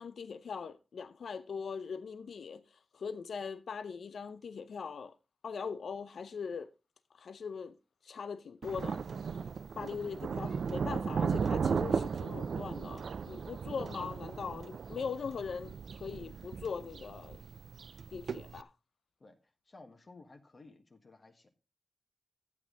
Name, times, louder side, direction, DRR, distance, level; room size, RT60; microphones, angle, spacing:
voice 1, 0.0-2.6 2.9-5.2 5.4-6.7 7.1-7.8 8.0-9.0 9.3-9.4 9.8-17.4 18.1-18.7, left 5 dB, 90° left, 0.6 m, -41 dB
Thunder, 8.6-18.6, right 6 dB, 80° right, 0.5 m, -36 dB
voice 2, 19.7-21.5, left 3 dB, 40° left, 1.6 m, -55 dB
12.0 x 8.5 x 3.9 m
wide cardioid pair, 110°, 0 cm